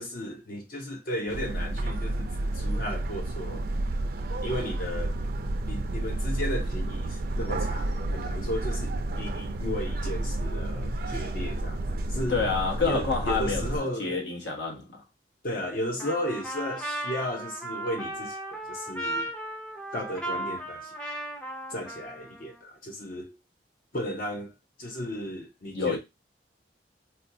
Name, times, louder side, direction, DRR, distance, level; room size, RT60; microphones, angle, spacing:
voice 1, 0.0-3.7 4.4-5.2 5.7-11.8 12.1-12.4 12.9-14.2 15.4-19.3 19.9-20.9 21.7-23.4 23.9-24.5 24.8-26.0, equal, 50° left, 0.7 m, -34 dB
sound 1, 1.3-13.8, right 1 dB, 55° right, 0.4 m, -31 dB
voice 2, 12.3-15.0 25.7-26.0, left 4 dB, 85° left, 1.2 m, -28 dB
Trumpet, 16.0-22.6, right 1 dB, 5° left, 0.5 m, -36 dB
4.1 x 2.3 x 2.6 m
head